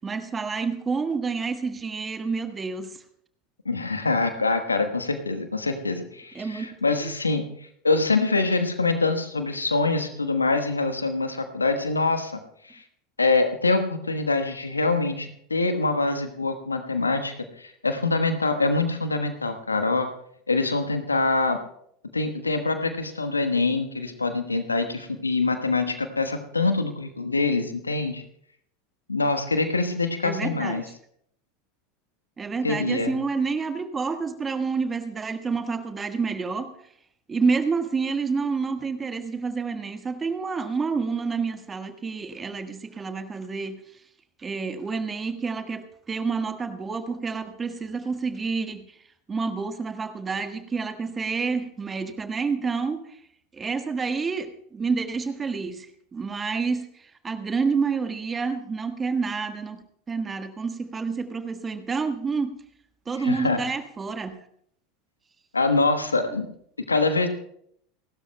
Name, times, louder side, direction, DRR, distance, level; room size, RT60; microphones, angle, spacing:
voice 1, 0.0-2.9 6.3-6.7 30.2-30.8 32.4-36.7 37.3-43.8 44.4-48.8 49.3-53.2 53.5-55.9 56.1-56.9 57.2-62.5 63.1-64.4, right 4 dB, 20° right, 8 dB, 1.5 m, -28 dB
voice 2, 3.6-7.4 7.8-12.8 13.2-20.1 20.5-21.6 22.1-28.2 29.1-30.8 32.6-33.2 63.2-63.6 65.5-66.5 66.9-67.3, left 3 dB, 90° left, 8 dB, 1.2 m, -25 dB
30.0 x 12.5 x 2.2 m, 0.69 s
figure-of-eight pair, 80°, 0 cm